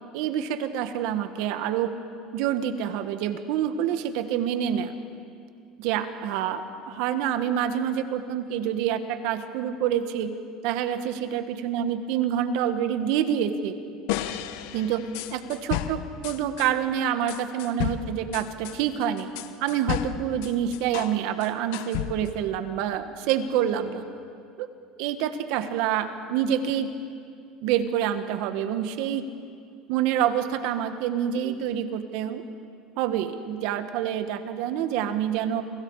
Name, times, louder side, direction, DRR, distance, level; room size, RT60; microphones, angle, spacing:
voice 1, 0.1-1.9 2.3-4.9 5.8-10.3 10.6-13.7 14.7-19.3 19.6-24.0 24.6-24.7 25.0-26.9 27.6-29.2 29.9-32.4 33.0-35.6, right 9 dB, 70° right, 9 dB, 1.5 m, -27 dB
sound 1, 14.1-16.7 17.3-21.2 21.4-22.4, left 12 dB, 80° left, 1.0 m, -32 dB
29.5 x 24.0 x 4.9 m, 2.4 s
supercardioid pair, 115°, 0 cm